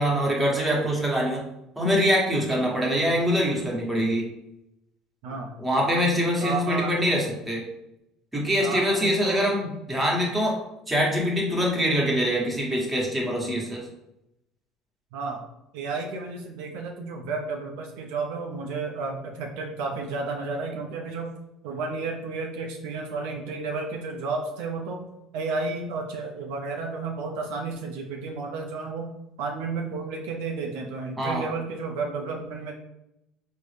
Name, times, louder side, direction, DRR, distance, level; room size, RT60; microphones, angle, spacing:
voice 1, 0.0-1.4 1.8-4.3 5.6-7.6 8.3-10.6 10.9-13.8 31.2-31.5, equal, 10° right, -3 dB, 1.2 m, -24 dB
voice 2, 5.2-5.5 6.4-6.9 8.6-9.5 15.1-15.4 15.7-21.3 21.6-25.1 25.3-29.1 29.4-32.7, right 4 dB, 75° right, 1 dB, 0.4 m, -32 dB
3.8 x 2.0 x 3.3 m, 0.87 s
hypercardioid pair, 75°, 0 cm